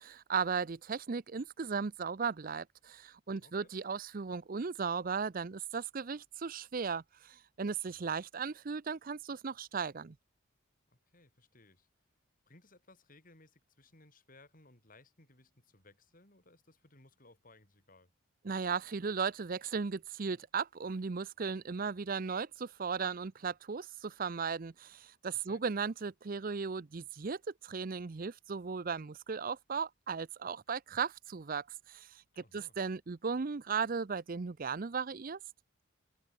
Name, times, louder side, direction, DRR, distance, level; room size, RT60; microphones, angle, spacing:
voice 1, 0.0-10.1 18.4-32.1 32.4-35.4, right 5 dB, 45° right, 0.5 m, -36 dB
voice 2, 3.4-3.7 7.9-8.1 10.9-11.9 12.5-18.1 25.5-25.6 32.4-32.8, left 2 dB, 40° left, 6.5 m, -61 dB
head